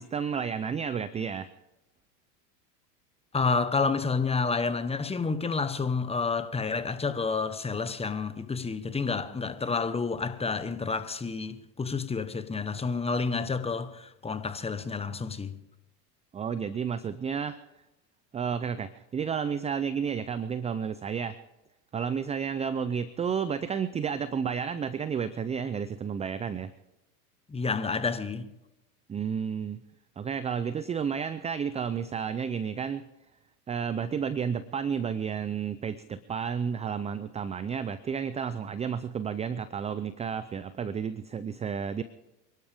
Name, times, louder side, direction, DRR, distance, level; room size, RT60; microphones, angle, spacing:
voice 1, 0.0-1.5 16.3-17.6 18.3-21.4 21.9-26.7 29.1-29.8 30.2-33.1 33.7-42.0, right 7 dB, 15° right, 0.5 m, -31 dB
voice 2, 3.3-15.5 27.5-28.5, left 4 dB, 10° left, 1.2 m, -29 dB
27.5 x 12.0 x 3.6 m
hypercardioid pair, 100°, 49 cm